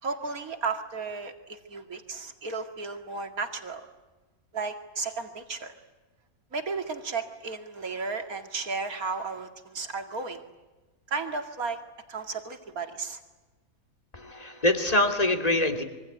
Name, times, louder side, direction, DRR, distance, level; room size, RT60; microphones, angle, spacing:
voice 1, 0.0-3.9 4.5-5.8 6.5-10.4 11.1-11.8 12.1-13.2, right 4 dB, 90° right, 6 dB, 2.7 m, -34 dB
voice 2, 14.1-15.8, left 1 dB, 25° left, 6 dB, 2.8 m, -24 dB
26.0 x 24.0 x 9.3 m, 1.2 s
omnidirectional pair, 1.5 m